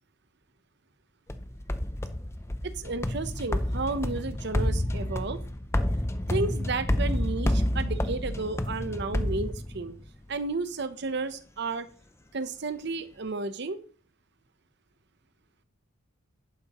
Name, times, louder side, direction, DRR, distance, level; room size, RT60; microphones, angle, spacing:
sound 1, 1.3-10.1, left 1 dB, 10° left, 0.5 m, -29 dB
voice 1, 2.6-5.4 6.3-9.9 10.3-11.9 12.3-13.8, right 3 dB, 55° right, 12 dB, 0.7 m, -32 dB
11.0 x 9.2 x 3.0 m, 0.43 s
head